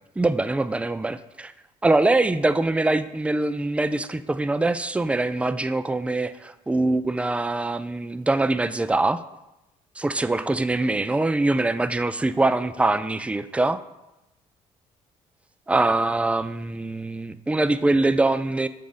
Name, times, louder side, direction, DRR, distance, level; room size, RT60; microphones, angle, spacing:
voice 1, 0.2-1.5 1.8-9.2 10.0-13.8 15.7-18.7, right 2 dB, 10° right, 13 dB, 0.3 m, -23 dB
7.1 x 3.6 x 3.9 m, 0.94 s
supercardioid pair, 65°, 15 cm